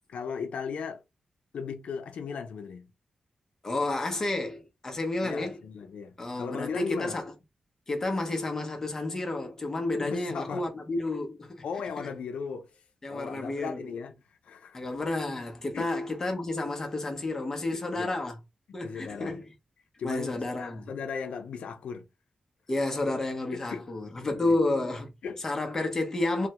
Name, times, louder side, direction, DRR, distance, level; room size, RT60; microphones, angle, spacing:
voice 1, 0.1-1.0 1.5-2.9 5.2-7.2 10.0-10.7 11.6-12.8 13.1-14.8 15.7-15.9 17.7-18.2 18.8-19.4 20.0-22.1 23.5-23.9 24.4-24.6 25.2-25.4, left 6 dB, 80° left, 0.5 m, -37 dB
voice 2, 3.6-5.6 6.2-7.3 7.9-11.6 13.0-13.8 14.7-18.3 18.7-19.5 20.0-20.9 22.7-25.1 25.4-26.5, left 2 dB, 25° left, 0.7 m, -30 dB
3.2 x 2.1 x 2.9 m
wide cardioid pair, 180°, 2 cm